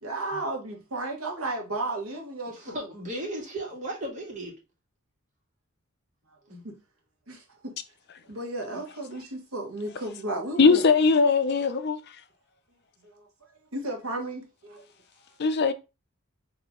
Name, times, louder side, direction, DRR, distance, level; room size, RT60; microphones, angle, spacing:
voice 1, 0.0-2.9 6.5-6.7 7.3-7.7 8.3-10.8 13.0-13.3 13.7-14.8, right 2 dB, 90° right, 1.3 m, -34 dB
voice 2, 2.6-4.5 6.5-6.6, right 1 dB, 35° right, 1.6 m, -35 dB
voice 3, 10.6-12.2 15.4-15.7, left 4 dB, 50° left, 0.5 m, -20 dB
4.1 x 2.8 x 3.6 m
head